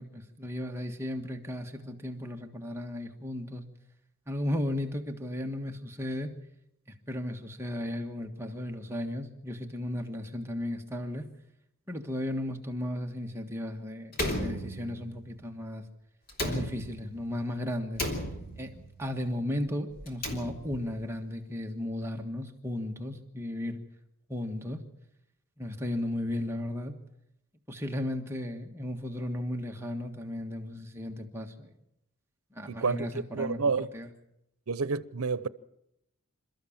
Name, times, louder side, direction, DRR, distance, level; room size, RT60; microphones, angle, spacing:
voice 1, 0.0-3.7 4.3-6.3 7.1-11.3 11.9-15.8 16.4-18.0 18.6-23.8 24.3-24.8 25.6-26.9 27.7-31.7 32.5-34.1, left 1 dB, 10° right, 1.5 m, -35 dB
Slam, 14.1-15.3 16.3-17.2 18.0-18.9 20.0-20.9, left 1 dB, 45° left, 3.4 m, -34 dB
voice 2, 32.7-33.1 33.3-33.9 34.7-35.5, right 4 dB, 80° right, 0.8 m, -29 dB
28.0 x 13.5 x 7.3 m
head